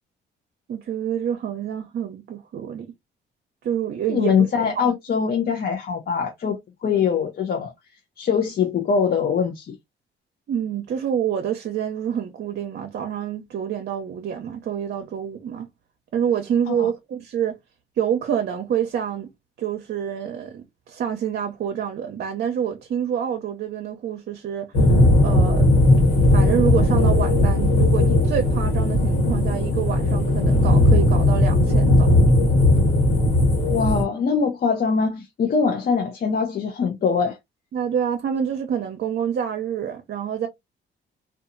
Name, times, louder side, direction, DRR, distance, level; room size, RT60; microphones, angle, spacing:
voice 1, 0.7-2.9 3.6-4.5 4.7-4.9 10.5-15.7 16.1-17.6 18.0-19.3 19.6-24.8 25.2-25.7 26.3-32.2 37.7-40.5, right 8 dB, 60° right, 0.6 m, -27 dB
voice 2, 4.1-7.7 8.2-9.8 16.7-16.9 33.7-37.4, left 6 dB, 50° left, 0.6 m, -23 dB
sound 1, 24.7-34.0, left 1 dB, 85° left, 1.3 m, -17 dB
2.8 x 2.3 x 2.5 m
cardioid pair, 90°, 20 cm